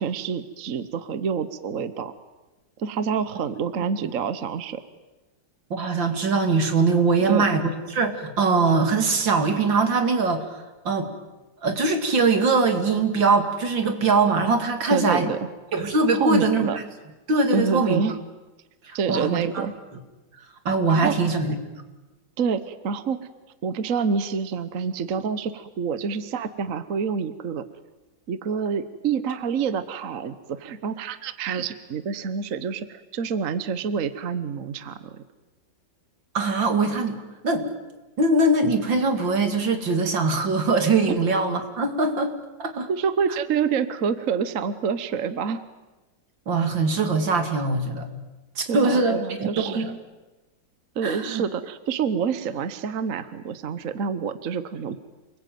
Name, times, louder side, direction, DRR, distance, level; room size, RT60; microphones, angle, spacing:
voice 1, 0.0-2.1 2.8-4.8 7.3-7.4 14.9-15.4 16.1-16.8 17.5-18.1 18.9-19.7 20.9-21.1 22.4-23.2 23.6-27.6 28.3-35.2 42.9-45.6 48.7-50.0 50.9-55.0, right 6 dB, 50° right, 12 dB, 1.3 m, -27 dB
voice 2, 5.7-10.5 10.8-11.1 11.6-15.3 15.7-16.8 17.3-18.0 18.9-19.7 20.6-21.6 36.3-37.2 37.4-37.7 38.2-42.3 42.6-42.9 46.5-48.1 48.6-49.9 51.0-51.4, right 3 dB, 80° right, 6 dB, 3.2 m, -22 dB
28.5 x 21.0 x 9.3 m, 1.1 s
omnidirectional pair, 2.0 m